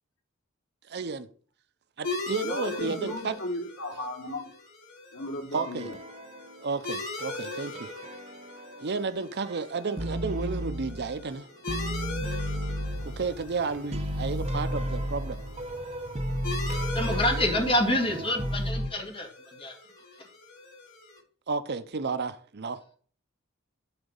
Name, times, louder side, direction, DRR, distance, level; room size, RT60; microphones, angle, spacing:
voice 1, 0.9-1.3 2.0-3.4 5.5-5.9 6.6-7.9 8.8-11.5 13.0-15.4 21.5-22.8, right 4 dB, 50° right, 0.7 m, -32 dB
sound 1, 2.0-21.2, left 3 dB, 90° left, 5.3 m, -41 dB
voice 2, 2.4-4.5 5.1-6.0, left 1 dB, 70° left, 3.7 m, -35 dB
sound 2, 5.5-6.7 7.2-9.1 9.4-11.4 11.7-18.9, equal, 30° right, 1.0 m, -34 dB
sound 3, 12.8-18.7, right 1 dB, 10° left, 2.9 m, -48 dB
voice 3, 16.9-19.8, left 1 dB, 25° left, 2.1 m, -27 dB
11.5 x 4.1 x 5.4 m
head